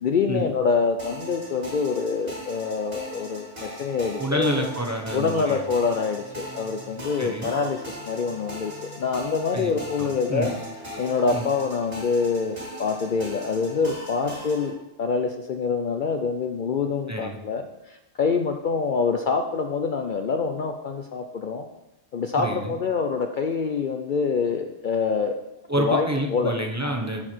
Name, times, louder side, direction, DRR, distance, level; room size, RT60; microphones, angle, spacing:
voice 1, 0.0-4.7 5.1-10.5 11.0-14.7 15.0-21.7 22.1-25.4 25.8-26.5, left 5 dB, 55° left, 5 dB, 0.6 m, -26 dB
sound 1, 1.0-14.7, equal, 55° right, 3.1 m, -39 dB
voice 2, 4.2-5.6 7.2-7.5 9.5-9.7 10.0-10.5 11.3-11.4 17.1-17.4 22.4-22.7 25.7-27.3, right 1 dB, 15° right, 1 dB, 0.9 m, -28 dB
13.0 x 4.6 x 4.4 m, 0.93 s
omnidirectional pair, 1.2 m